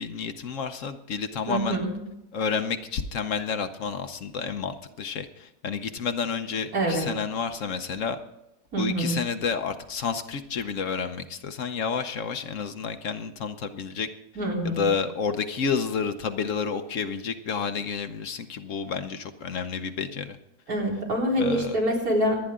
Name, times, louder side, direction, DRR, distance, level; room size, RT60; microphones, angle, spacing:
voice 1, 0.0-1.8 2.3-8.2 8.8-14.1 14.6-20.4 21.4-21.8, left 6 dB, 60° left, 9 dB, 1.1 m, -30 dB
voice 2, 1.5-2.0 6.7-7.1 8.7-9.2 14.4-14.9 20.7-22.4, right 1 dB, 75° right, -3 dB, 4.5 m, -25 dB
26.0 x 9.7 x 3.7 m, 0.94 s
omnidirectional pair, 1.6 m